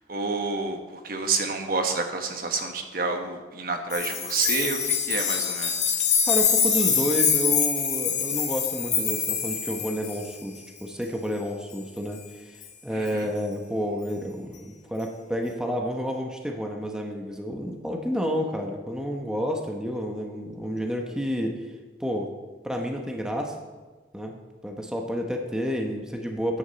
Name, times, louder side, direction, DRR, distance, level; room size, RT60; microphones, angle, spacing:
voice 1, 0.1-0.8 1.0-5.9 13.0-13.2, right 4 dB, 55° right, 5 dB, 1.3 m, -29 dB
sound 1, 3.9-10.3 12.6-12.7, left 7 dB, 40° left, 1.7 m, -25 dB
voice 2, 6.3-21.6 22.0-22.3 22.6-23.6 24.1-26.6, equal, 5° right, 2 dB, 0.9 m, -30 dB
13.0 x 10.0 x 4.1 m, 1.3 s
head